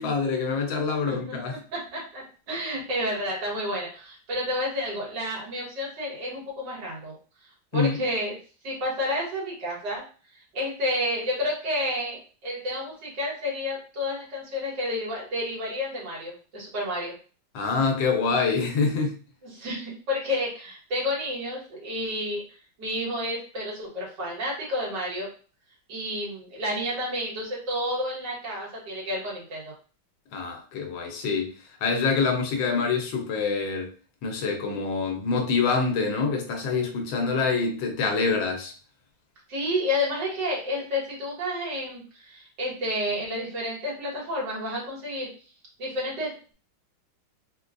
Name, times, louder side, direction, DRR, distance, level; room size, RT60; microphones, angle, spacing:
voice 1, 0.0-1.5 7.7-8.0 17.5-19.2 30.3-31.5 31.8-33.9 34.2-38.7, left 4 dB, 85° left, 3 dB, 1.5 m, -26 dB
voice 2, 1.1-1.4 1.7-7.2 7.7-8.4 8.6-10.0 10.3-17.1 19.4-22.4 22.8-25.3 25.9-29.7 39.5-45.3 45.8-46.5, left 1 dB, 70° right, -4 dB, 2.0 m, -30 dB
4.0 x 2.3 x 2.4 m, 0.37 s
omnidirectional pair, 2.0 m